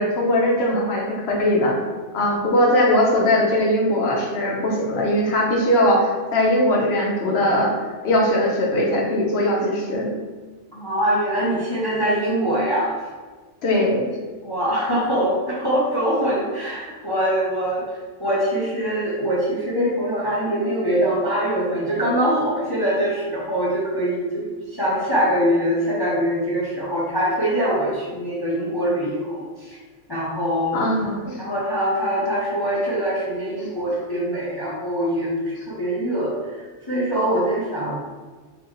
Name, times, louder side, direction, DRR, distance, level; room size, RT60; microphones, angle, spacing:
voice 1, 0.0-1.8 2.1-7.7 8.0-10.1 13.6-14.0 30.7-31.4, left 1 dB, 60° left, -1 dB, 1.0 m, -20 dB
voice 2, 10.7-13.0 14.4-29.8 30.1-30.8 31.4-38.0, equal, 25° left, -7 dB, 0.6 m, -23 dB
3.6 x 2.9 x 3.1 m, 1.4 s
omnidirectional pair, 1.2 m